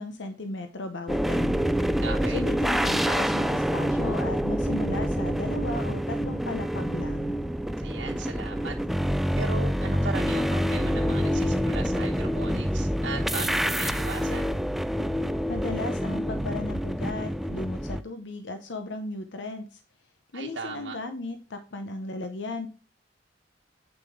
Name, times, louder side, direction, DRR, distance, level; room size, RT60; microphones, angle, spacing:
voice 1, 0.0-1.7 2.3-7.3 15.5-19.8 20.3-22.7, left 2 dB, 80° left, 7 dB, 0.8 m, -35 dB
sound 1, 1.1-18.0, equal, ahead, 0.3 m, -27 dB
voice 2, 2.0-2.4 7.8-8.8 9.4-14.5 20.3-21.0, right 4 dB, 85° right, -1 dB, 1.1 m, -37 dB
8.3 x 6.6 x 3.6 m, 0.37 s
head